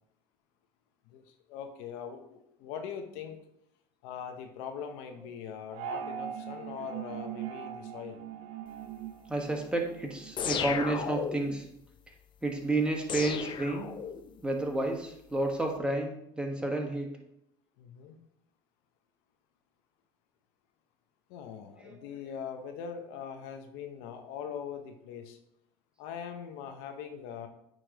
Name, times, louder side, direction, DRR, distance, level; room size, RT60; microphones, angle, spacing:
voice 1, 1.1-3.4 4.0-8.2 17.8-18.2 21.3-25.4 26.0-27.5, left 7 dB, 75° left, 6 dB, 0.8 m, -42 dB
sound 1, 5.7-10.3, right 9 dB, 65° right, 0.6 m, -40 dB
voice 2, 9.3-11.6 12.4-13.9 14.4-17.1 21.8-22.0, right 2 dB, 10° right, 2 dB, 1.3 m, -31 dB
sound 2, 10.4-11.6 13.1-14.4, left 7 dB, 40° left, 0.6 m, -34 dB
9.0 x 3.1 x 3.8 m, 0.76 s
supercardioid pair, 85°, 13 cm